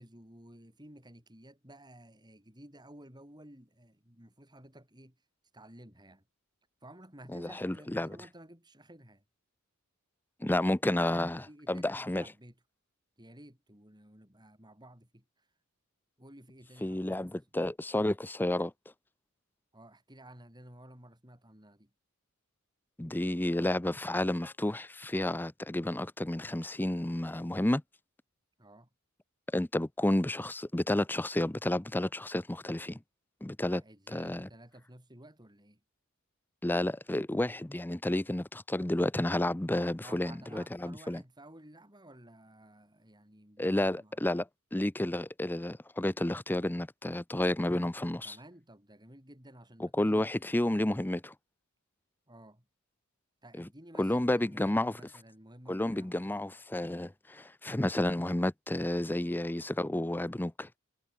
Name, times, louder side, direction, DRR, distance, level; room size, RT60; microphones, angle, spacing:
voice 1, 0.0-5.2 5.5-6.2 6.8-9.2 10.9-12.5 13.2-15.4 16.2-17.4 19.7-21.9 28.6-28.9 33.7-35.8 40.0-44.3 48.2-50.5 52.3-52.6 53.4-56.8, right 1 dB, 20° right, 7.8 m, -54 dB
voice 2, 7.3-8.2 10.4-12.3 16.8-18.7 23.0-27.8 29.5-33.0 33.4-33.8 34.1-34.5 36.6-41.2 43.6-48.4 49.8-51.3 53.6-53.7 54.0-54.9 55.7-60.8, left 1 dB, 10° left, 0.5 m, -31 dB
head